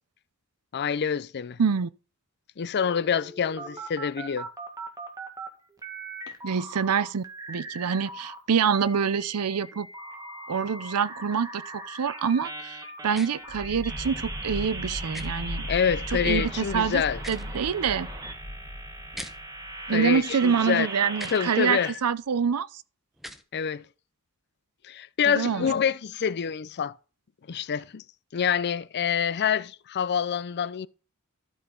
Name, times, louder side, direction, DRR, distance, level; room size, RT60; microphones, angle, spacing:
voice 1, 0.7-1.6 2.6-4.5 15.7-17.2 19.9-20.9 21.3-21.9 23.5-23.8 24.8-26.9 27.5-28.0 28.3-30.9, left 7 dB, 50° left, 0.5 m, -26 dB
voice 2, 1.6-1.9 6.4-9.9 10.5-15.7 16.1-17.0 17.3-18.1 19.9-22.7 25.3-25.7, right 6 dB, 85° right, 0.6 m, -26 dB
sound 1, 2.8-5.5 5.8-8.4 8.7-21.9, right 2 dB, 15° right, 1.7 m, -39 dB
sound 2, 13.1-13.3 15.1-15.3 17.1-17.5 19.1-19.3 21.1-21.4 23.1-23.4, equal, ahead, 0.9 m, -39 dB
sound 3, 13.5-20.2, left 1 dB, 20° left, 1.1 m, -37 dB
13.0 x 6.2 x 3.8 m
head